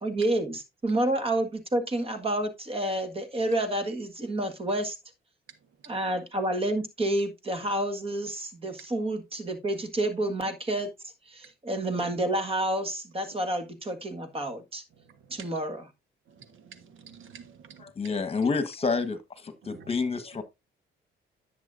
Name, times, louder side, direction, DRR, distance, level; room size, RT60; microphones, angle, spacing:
voice 1, 0.0-5.0 5.8-10.9 11.3-14.8 15.3-15.9, right 1 dB, 30° right, 1.7 m, -29 dB
voice 2, 16.4-17.8 19.7-19.9, right 7 dB, 80° right, 1.4 m, -49 dB
voice 3, 17.8-20.4, left 4 dB, 30° left, 1.3 m, -29 dB
10.5 x 7.5 x 2.6 m
cardioid pair, 90°, 20 cm